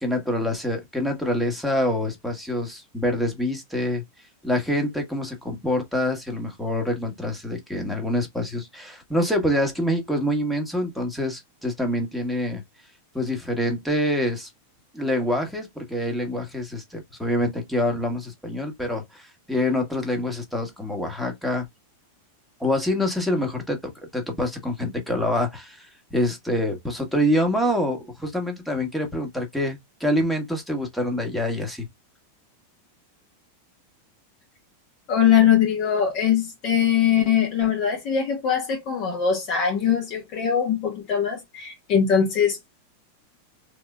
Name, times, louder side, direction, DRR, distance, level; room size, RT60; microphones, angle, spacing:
voice 1, 0.0-4.0 4.4-12.6 13.1-14.5 14.9-21.7 22.6-23.8 24.1-31.9, left 1 dB, ahead, 1.4 m, -26 dB
voice 2, 35.1-42.6, left 8 dB, 40° left, 1.3 m, -21 dB
4.1 x 3.5 x 2.2 m
figure-of-eight pair, 90°, 0 cm